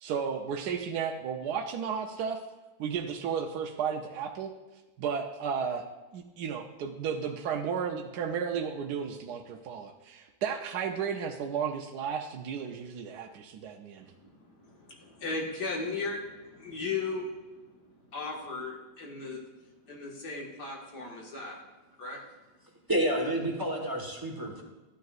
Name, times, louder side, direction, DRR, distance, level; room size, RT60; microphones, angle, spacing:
voice 1, 0.0-2.4 2.8-4.5 5.0-5.9 6.1-14.1, right 7 dB, 75° right, 3 dB, 1.2 m, -33 dB
voice 2, 14.0-21.6 22.0-22.2, left 3 dB, 80° left, -1 dB, 2.3 m, -37 dB
voice 3, 22.9-24.6, right 1 dB, 15° right, 0 dB, 1.1 m, -29 dB
12.5 x 9.2 x 2.4 m, 1.1 s
omnidirectional pair, 1.8 m